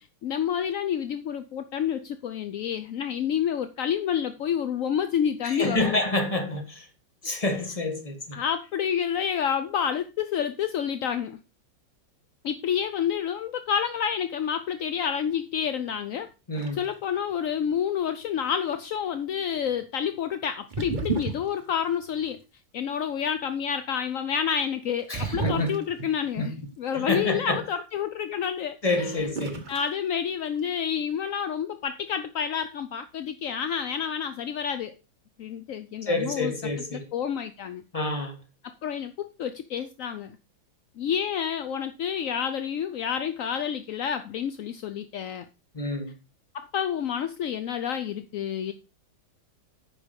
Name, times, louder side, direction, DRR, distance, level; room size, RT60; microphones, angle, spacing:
voice 1, 0.2-6.0 8.3-11.4 12.4-16.3 16.7-22.4 22.7-29.3 29.7-34.9 35.4-36.5 36.9-37.8 38.8-40.4 41.0-45.5 46.5-48.7, left 8 dB, 70° left, 0.8 m, -29 dB
voice 2, 5.4-6.8 7.2-8.4 16.5-16.8 25.1-25.7 26.4-26.5 26.9-27.6 28.8-29.6 36.0-37.0 37.9-38.4 45.7-46.1, left 2 dB, 20° left, 1.7 m, -28 dB
sound 1, 16.5-16.9 20.7-21.7 25.1-26.3 28.9-29.0 29.4-30.0 30.2-30.8, right 4 dB, 30° right, 1.2 m, -32 dB
9.3 x 5.9 x 5.2 m
omnidirectional pair, 2.0 m